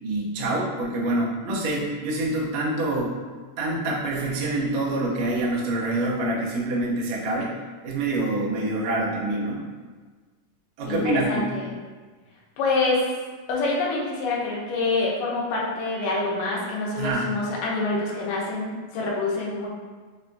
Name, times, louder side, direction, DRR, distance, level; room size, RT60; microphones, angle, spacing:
voice 1, 0.0-3.1 3.6-7.5 7.8-9.6 10.8-11.5 17.0-17.3, right 2 dB, 85° right, -5 dB, 1.5 m, -26 dB
voice 2, 10.9-11.7 12.6-13.1 13.5-19.7, left 3 dB, 80° left, -3 dB, 2.4 m, -26 dB
5.5 x 2.2 x 2.5 m, 1.4 s
omnidirectional pair, 3.8 m